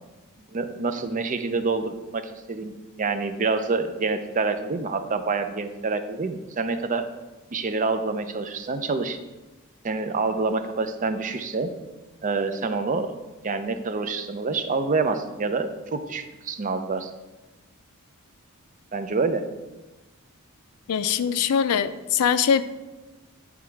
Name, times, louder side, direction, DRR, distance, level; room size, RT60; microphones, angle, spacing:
voice 1, 0.5-2.7 3.0-7.1 7.5-9.2 9.8-11.7 12.2-13.2 13.4-17.1 18.9-19.5, right 4 dB, 35° right, 8 dB, 0.5 m, -27 dB
voice 2, 20.9-22.6, left 7 dB, 85° left, 13 dB, 0.4 m, -22 dB
9.5 x 3.6 x 4.6 m, 1.1 s
head